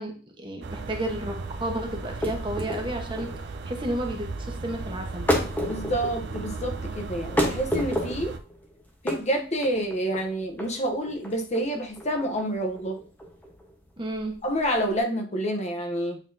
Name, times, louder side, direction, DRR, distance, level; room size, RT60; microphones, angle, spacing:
voice 1, 0.0-3.3 3.6-5.5 14.0-14.3, right 1 dB, 25° right, 2 dB, 1.1 m, -32 dB
sound 1, 0.6-8.4, right 3 dB, 60° right, 0.5 m, -36 dB
sound 2, 2.0-15.0, equal, 10° left, 1.0 m, -31 dB
voice 2, 5.7-8.3 9.0-13.0 14.4-16.2, right 1 dB, 35° left, 2 dB, 0.8 m, -28 dB
8.9 x 3.9 x 2.7 m, 0.39 s
head